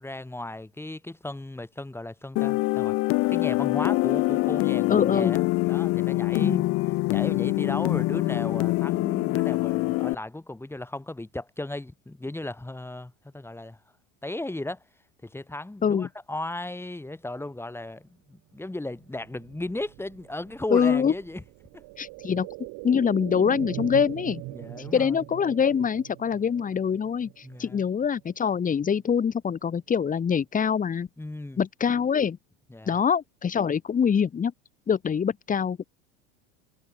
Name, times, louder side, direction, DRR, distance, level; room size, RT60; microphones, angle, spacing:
voice 1, 0.0-6.6 7.1-13.8 14.2-14.8 15.2-21.4 21.7-21.8 24.5-25.2 27.4-27.8 31.2-31.6 32.7-33.0, left 2 dB, 5° left, 3.1 m, -36 dB
sound 1, 2.3-10.1, left 21 dB, 40° left, 0.5 m, -24 dB
voice 2, 4.9-5.4 6.4-6.7 15.8-16.1 20.7-21.1 22.0-22.5 22.8-24.4 24.9-31.1 31.6-32.4 32.8-34.5 34.9-35.8, left 7 dB, 20° left, 1.7 m, -24 dB
sound 2, 19.0-28.7 29.0-29.1, right 25 dB, 55° right, 2.4 m, -41 dB
hypercardioid pair, 105°, 36 cm